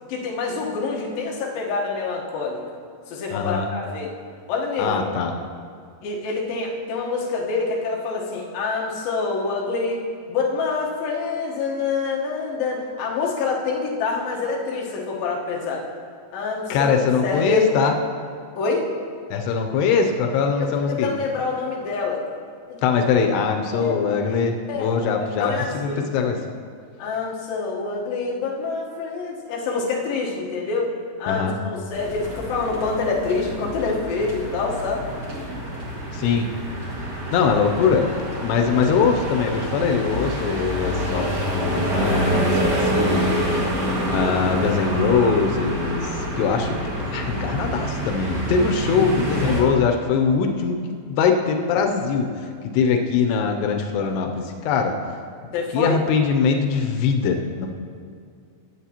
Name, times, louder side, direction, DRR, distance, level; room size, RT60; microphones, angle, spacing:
voice 1, 0.1-2.6 3.1-4.1 4.5-5.1 6.0-10.0 10.3-15.9 16.3-17.8 18.6-18.9 20.6-22.2 22.7-22.8 23.7-24.1 24.7-24.9 25.2-26.1 27.0-30.9 31.2-35.1 43.5-44.0 49.4-49.7 55.5-56.0, left 4 dB, 70° left, -2 dB, 2.8 m, -26 dB
voice 2, 3.3-3.7 4.8-5.3 16.7-17.9 19.3-21.1 22.8-26.4 31.3-31.6 36.1-36.5 37.3-41.3 41.6-43.6 44.1-46.8 47.1-50.8 51.1-52.3 52.7-54.9 55.7-57.7, left 5 dB, 90° left, 4 dB, 2.8 m, -22 dB
sound 1, 31.9-49.6, equal, 40° right, 1.5 m, -27 dB
19.0 x 8.0 x 2.9 m, 2.2 s
omnidirectional pair, 4.7 m